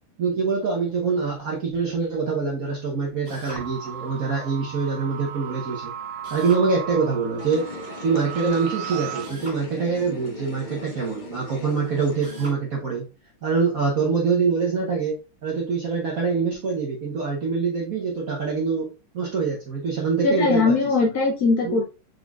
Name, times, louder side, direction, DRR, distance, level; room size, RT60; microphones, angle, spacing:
voice 1, 0.2-5.9 6.3-7.7 8.0-13.0 13.4-18.9 19.1-20.7 21.6-21.8, right 5 dB, 55° right, -2 dB, 1.0 m, -24 dB
Drill, 3.2-3.7 6.2-6.7 9.2-9.6 12.2-12.6, right 2 dB, 25° right, 1.8 m, -41 dB
sound 1, 3.6-9.3, right 9 dB, 80° right, 0.9 m, -36 dB
sound 2, 7.4-12.5, left 2 dB, 35° left, 0.7 m, -38 dB
voice 2, 20.2-21.8, left 3 dB, 70° left, 0 dB, 0.9 m, -20 dB
4.8 x 4.2 x 2.3 m, 0.31 s
omnidirectional pair, 2.4 m